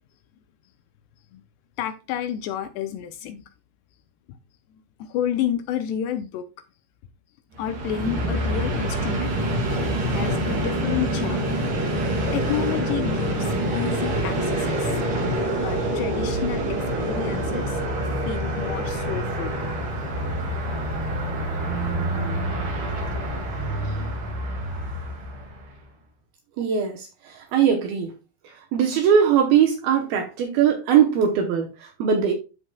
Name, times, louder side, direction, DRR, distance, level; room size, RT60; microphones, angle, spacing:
voice 1, 1.8-3.4 4.3-4.4 5.0-6.4 7.6-9.7 10.1-11.6 12.1-15.0 15.5-17.8 18.3-19.6, left 10 dB, 80° left, 2.5 m, -30 dB
Train, 7.5-25.7, right 1 dB, 50° right, 3.3 m, -26 dB
voice 2, 26.6-28.1 28.4-32.3, right 8 dB, 75° right, 2.3 m, -21 dB
12.5 x 4.8 x 2.3 m
omnidirectional pair, 5.2 m